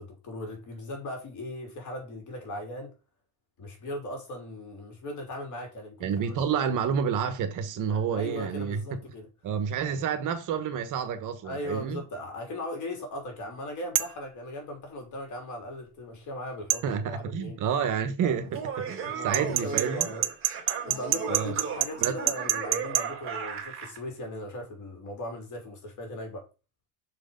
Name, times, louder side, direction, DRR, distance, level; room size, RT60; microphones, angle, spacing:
voice 1, 0.0-2.9 3.6-6.4 7.7-9.3 9.8-10.0 11.4-17.6 18.2-18.4 19.0-20.2 20.8-26.4, left 1 dB, 50° left, 3.4 m, -38 dB
voice 2, 6.0-9.0 9.4-12.0 16.8-18.5 18.8-20.1 21.3-21.5 22.0-22.2, right 7 dB, 50° right, 1.1 m, -29 dB
sound 1, 14.0-14.2 16.7-16.9 19.3-23.1, right 16 dB, 85° right, 0.8 m, -26 dB
Laughter, 18.4-24.0, right 7 dB, 30° right, 2.3 m, -36 dB
6.3 x 4.8 x 5.2 m
cardioid pair, 155°, 39 cm